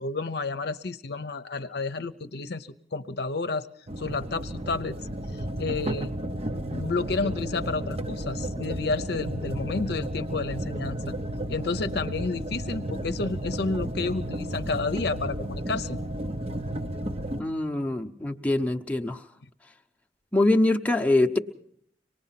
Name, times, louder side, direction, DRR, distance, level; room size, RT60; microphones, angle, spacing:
voice 1, 0.0-3.7 4.0-5.0 5.6-6.1 6.7-11.1 11.5-16.0, left 3 dB, 60° left, 9 dB, 0.8 m, -30 dB
sound 1, 3.9-17.4, right 1 dB, 35° right, 0.8 m, -33 dB
voice 2, 17.3-19.2 20.3-21.4, left 2 dB, 10° left, 4 dB, 0.9 m, -24 dB
25.0 x 19.5 x 5.9 m, 0.64 s
head